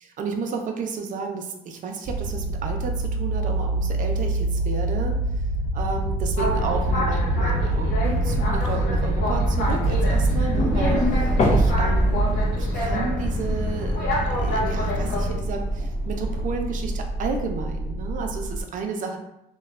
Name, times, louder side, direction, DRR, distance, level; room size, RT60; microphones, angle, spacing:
voice 1, 0.2-5.2 5.7-14.0 14.4-19.2, right 4 dB, 50° right, 3 dB, 0.4 m, -32 dB
sound 1, 2.0-18.6, right 2 dB, 5° left, 0.7 m, -26 dB
Boat Water vehicle, 6.4-15.3, left 1 dB, 70° left, 0.8 m, -27 dB
sound 2, 9.6-14.3 14.7-16.9, left 1 dB, 40° left, 0.5 m, -27 dB
3.0 x 2.1 x 2.3 m, 0.86 s
cardioid pair, 110°, 17 cm